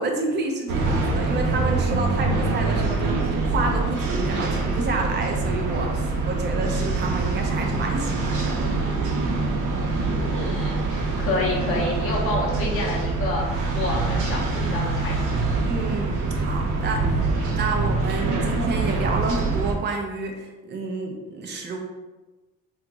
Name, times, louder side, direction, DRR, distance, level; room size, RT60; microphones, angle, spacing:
voice 1, 0.0-8.6 15.6-21.8, right 3 dB, 35° right, 2 dB, 0.5 m, -29 dB
sound 1, 0.7-19.7, right 3 dB, 85° right, 0.6 m, -24 dB
voice 2, 10.0-15.4, left 2 dB, 50° left, -4 dB, 0.6 m, -29 dB
2.9 x 2.4 x 3.6 m, 1.2 s
cardioid pair, 175°, 29 cm